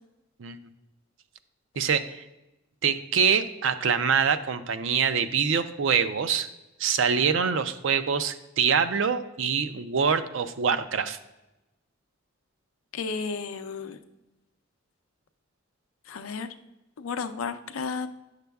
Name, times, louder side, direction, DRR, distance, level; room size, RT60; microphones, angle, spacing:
voice 1, 1.8-2.2 2.8-6.5 6.8-11.2, right 6 dB, 65° right, 10 dB, 0.4 m, -25 dB
voice 2, 12.9-14.0 16.1-16.5 17.0-18.1, left 5 dB, 90° left, 9 dB, 0.5 m, -33 dB
9.1 x 6.6 x 2.3 m, 0.97 s
head